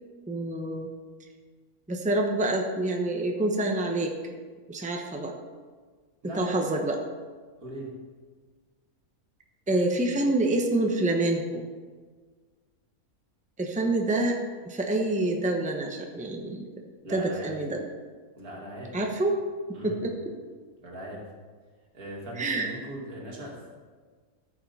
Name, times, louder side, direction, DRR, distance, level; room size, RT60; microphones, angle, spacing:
voice 1, 0.3-0.9 1.9-4.2 4.7-5.3 6.3-7.0 9.7-11.7 13.6-14.4 14.6-16.6 17.1-17.8 18.9-19.4 19.8-20.3 22.4-22.7, right 2 dB, 5° right, 2 dB, 0.8 m, -27 dB
voice 2, 6.2-6.6 7.6-7.9 17.0-17.6 18.3-19.0 19.7-20.0 20.8-21.2 21.9-23.7, right 1 dB, 85° right, -2 dB, 2.7 m, -39 dB
13.5 x 7.3 x 4.2 m, 1.5 s
omnidirectional pair, 1.5 m